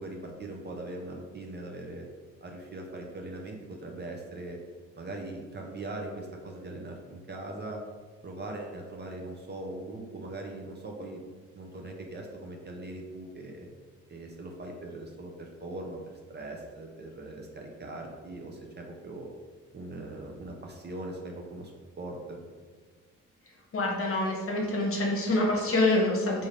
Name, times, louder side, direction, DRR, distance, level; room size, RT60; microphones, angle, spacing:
voice 1, 0.0-2.1 2.4-4.6 4.9-7.8 8.2-11.2 11.5-13.7 14.1-19.3 19.7-21.7 22.0-22.4, right 2 dB, 35° right, 1 dB, 0.6 m, -40 dB
voice 2, 23.7-26.5, left 2 dB, 45° left, -1 dB, 1.0 m, -26 dB
3.6 x 2.7 x 3.2 m, 1.5 s
cardioid pair, 75°, 30 cm